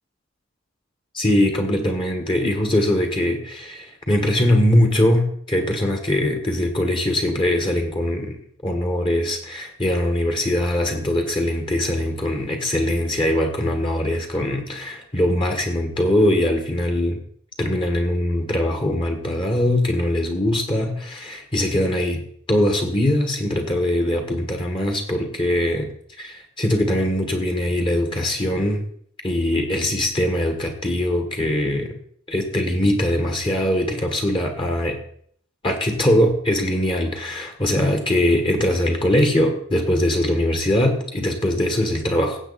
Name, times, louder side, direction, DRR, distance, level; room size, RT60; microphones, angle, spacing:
voice 1, 1.1-17.2 17.6-25.9 26.2-28.8 29.2-32.0 32.3-35.0 35.6-42.4, left 1 dB, 25° left, 4 dB, 1.5 m, -21 dB
16.0 x 7.9 x 4.1 m, 0.62 s
head